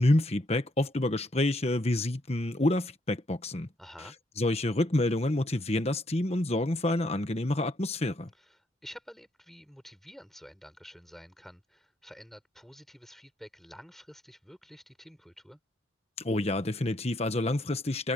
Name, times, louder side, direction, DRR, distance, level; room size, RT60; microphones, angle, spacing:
voice 1, 0.0-3.7 4.4-8.3 16.2-18.1, left 1 dB, 35° left, 1.3 m, -28 dB
voice 2, 3.8-4.2 8.3-15.6, equal, ahead, 6.6 m, -50 dB
head